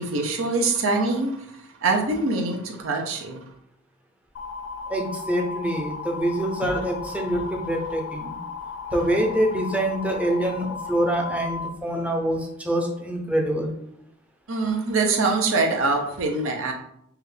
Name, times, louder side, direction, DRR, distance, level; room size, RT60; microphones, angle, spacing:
voice 1, 0.0-1.4 1.8-3.4 6.6-6.9 7.4-7.6 14.5-16.7, right 3 dB, 85° right, 3 dB, 0.7 m, -24 dB
sound 1, 4.4-11.7, left 5 dB, 60° left, 0.4 m, -35 dB
voice 2, 4.9-8.4 8.9-13.7, right 1 dB, 5° right, 1 dB, 0.5 m, -25 dB
4.7 x 2.4 x 3.2 m, 0.73 s
head